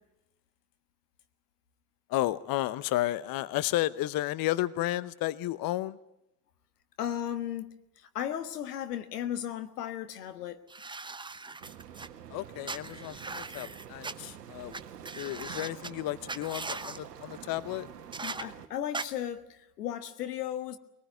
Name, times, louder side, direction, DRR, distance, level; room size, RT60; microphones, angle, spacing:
voice 1, 2.1-6.0 12.3-14.8 15.2-17.9, left 16 dB, 50° left, 0.8 m, -32 dB
voice 2, 7.0-10.6 18.2-20.8, left 10 dB, 85° left, 1.5 m, -35 dB
sound 1, 10.7-12.1 12.6-14.1 14.7-14.8 15.0-15.9 16.3-17.0 18.1-18.4 18.9-19.0, right 3 dB, 10° right, 0.9 m, -39 dB
sound 2, 11.6-18.7, right 9 dB, 90° right, 1.2 m, -47 dB
21.0 x 19.0 x 9.3 m
hypercardioid pair, 70°, 46 cm